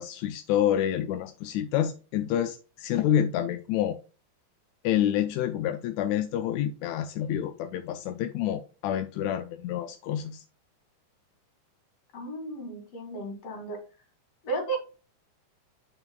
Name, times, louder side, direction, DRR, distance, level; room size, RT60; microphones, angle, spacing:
voice 1, 0.0-4.0 4.8-10.4, left 10 dB, 80° left, 1.7 m, -28 dB
voice 2, 12.1-13.8 14.4-14.8, right 3 dB, 50° left, 3.2 m, -34 dB
9.0 x 5.9 x 2.3 m
omnidirectional pair, 3.6 m